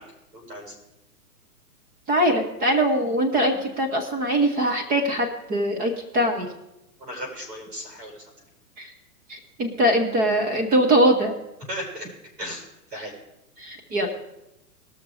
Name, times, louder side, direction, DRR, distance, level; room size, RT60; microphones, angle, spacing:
voice 1, 0.3-0.7 7.0-8.2 11.7-12.1 12.4-12.6 12.9-13.1, equal, 75° right, 0 dB, 5.8 m, -35 dB
voice 2, 2.1-6.5 8.8-8.9 9.3-11.3 13.6-14.1, right 1 dB, 20° right, 3 dB, 0.9 m, -22 dB
19.0 x 6.4 x 4.9 m, 0.90 s
hypercardioid pair, 130°, 47 cm